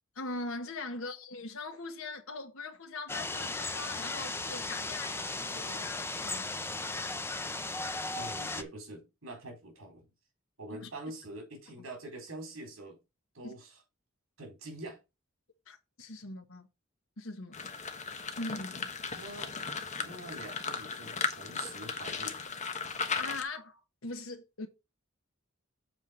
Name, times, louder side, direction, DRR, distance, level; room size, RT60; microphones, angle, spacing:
voice 1, 0.1-6.5 10.7-10.9 13.4-13.5 15.7-16.7 17.2-17.7 18.4-18.9 23.2-24.7, left 2 dB, 75° left, 1.3 m, -41 dB
sound 1, 3.1-8.6, left 2 dB, 10° left, 0.7 m, -36 dB
voice 2, 8.2-10.1 10.6-13.0 13.3-13.8 14.4-15.0 19.2-19.6 20.0-22.4, right 2 dB, 70° right, 4.1 m, -45 dB
sound 2, 17.5-23.4, left 5 dB, 35° left, 1.2 m, -36 dB
7.5 x 4.6 x 6.3 m
head